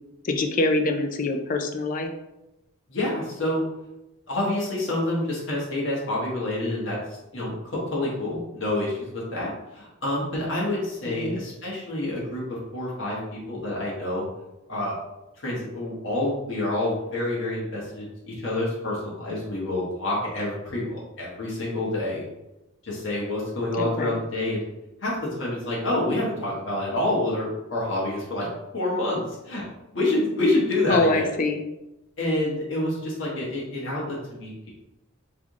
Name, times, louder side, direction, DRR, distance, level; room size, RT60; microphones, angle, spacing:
voice 1, 0.2-2.1 11.1-11.4 23.8-24.2 30.9-31.6, left 2 dB, 40° left, 5 dB, 0.4 m, -25 dB
voice 2, 2.9-3.6 4.3-14.2 14.7-15.0 15.4-22.2 22.8-24.6 25.0-28.5 28.7-29.6 29.9-31.3 32.2-34.5, left 1 dB, 65° left, -5 dB, 1.4 m, -27 dB
3.6 x 3.3 x 3.7 m, 0.94 s
head